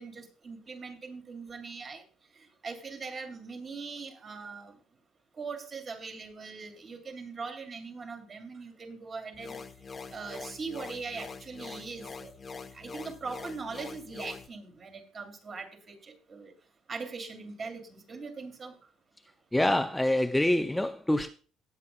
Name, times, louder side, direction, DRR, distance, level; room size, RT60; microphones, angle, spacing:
voice 1, 0.0-2.0 2.3-4.8 5.4-9.6 10.1-12.3 12.7-16.5 16.9-18.7, right 4 dB, 35° right, 2.7 m, -41 dB
sound 1, 9.3-14.5, left 4 dB, 25° left, 1.0 m, -44 dB
voice 2, 19.5-21.3, left 1 dB, 5° left, 0.5 m, -26 dB
18.0 x 8.1 x 2.2 m
cardioid pair, 120°, 0 cm